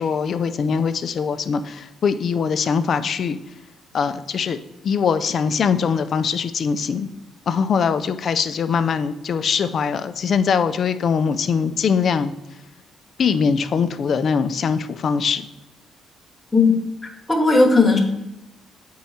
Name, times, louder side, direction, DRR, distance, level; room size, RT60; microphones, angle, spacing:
voice 1, 0.0-3.4 3.9-4.6 4.8-7.1 7.5-12.3 13.2-15.4, left 6 dB, 55° left, 11 dB, 0.5 m, -22 dB
voice 2, 17.3-18.0, left 3 dB, 10° left, 0 dB, 1.2 m, -15 dB
7.7 x 4.7 x 4.2 m, 0.94 s
cardioid pair, 90°, 0 cm